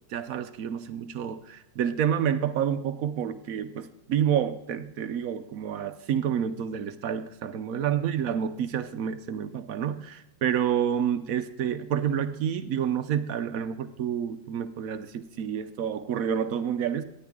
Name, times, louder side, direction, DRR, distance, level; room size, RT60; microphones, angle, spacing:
voice 1, 0.1-17.0, right 9 dB, 65° right, 0.9 m, -29 dB
15.5 x 9.6 x 3.6 m
omnidirectional pair, 2.0 m